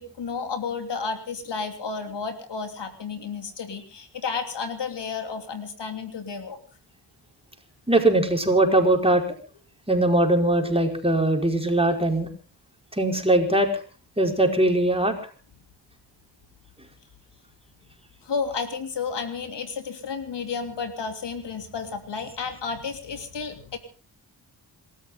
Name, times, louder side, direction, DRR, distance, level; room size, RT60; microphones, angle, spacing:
voice 1, 0.0-6.6 18.2-23.8, left 5 dB, 75° left, 6 dB, 3.2 m, -32 dB
voice 2, 7.9-9.2 9.9-12.3 12.9-13.7 14.2-15.2, right 1 dB, 15° right, 3 dB, 5.0 m, -21 dB
27.5 x 13.5 x 3.8 m, 0.37 s
cardioid pair, 65°, 43 cm